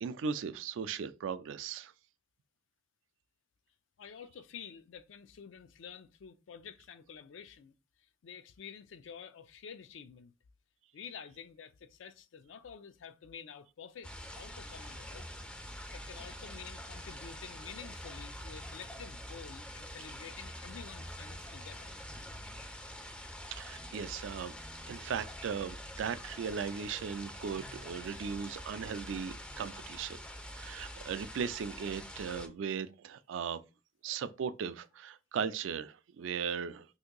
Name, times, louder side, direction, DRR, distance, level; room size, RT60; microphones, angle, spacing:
voice 1, 0.0-1.9 23.5-24.5 24.9-30.2 30.5-33.6 34.0-36.9, right 6 dB, 70° right, 0.3 m, -37 dB
voice 2, 4.0-7.7 8.2-10.3 10.9-14.1 14.3-15.3 15.9-22.0, left 7 dB, 70° left, 0.4 m, -49 dB
sound 1, 14.0-32.5, equal, 5° left, 0.4 m, -46 dB
2.7 x 2.6 x 3.7 m
head